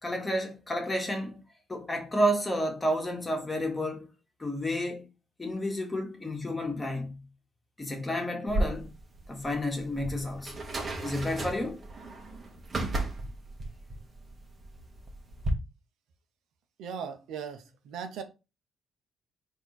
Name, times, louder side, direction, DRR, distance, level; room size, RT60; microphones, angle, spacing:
voice 1, 0.0-1.4 1.7-4.1 4.4-5.0 5.4-7.2 7.8-8.9 9.3-10.5 11.0-11.8, equal, 20° left, 1.5 m, -31 dB
sound 1, 8.5-15.5, right 2 dB, 40° right, 1.3 m, -35 dB
voice 2, 16.8-18.2, right 7 dB, 85° right, 0.8 m, -38 dB
4.4 x 3.0 x 4.0 m
cardioid pair, 90°, 0 cm